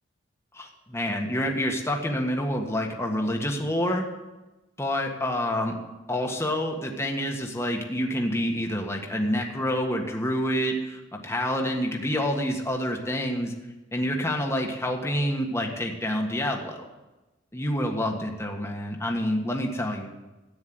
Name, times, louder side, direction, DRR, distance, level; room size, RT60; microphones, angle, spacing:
voice 1, 0.5-4.1 4.8-5.8 6.1-13.5 13.9-16.8 17.5-20.1, equal, 15° left, 1 dB, 1.6 m, -27 dB
13.5 x 9.7 x 7.8 m, 1.1 s
head